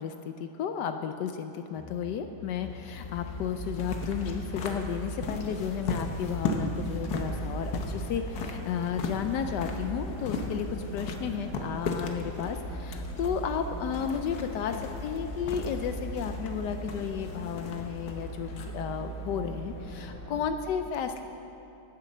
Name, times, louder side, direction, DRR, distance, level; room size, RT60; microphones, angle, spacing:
voice 1, 0.0-10.7 10.9-21.2, left 7 dB, 80° left, 7 dB, 0.9 m, -33 dB
sound 1, 1.8-20.5, equal, 10° left, 0.6 m, -39 dB
sound 2, 2.6-20.2, left 3 dB, 55° left, 1.4 m, -38 dB
10.5 x 9.7 x 7.3 m, 2.9 s
omnidirectional pair, 2.3 m